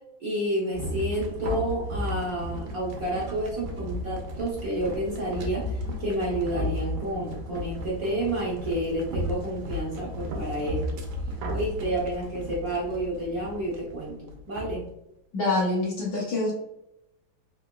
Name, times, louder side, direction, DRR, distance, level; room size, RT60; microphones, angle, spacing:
voice 1, 0.2-11.0 11.5-14.9, right 1 dB, 60° right, -5 dB, 1.1 m, -30 dB
sound 1, 0.7-14.8, equal, 80° right, 1.4 m, -34 dB
voice 2, 15.3-16.5, left 2 dB, 60° left, -6 dB, 1.2 m, -25 dB
3.8 x 2.9 x 2.2 m, 0.85 s
omnidirectional pair, 2.1 m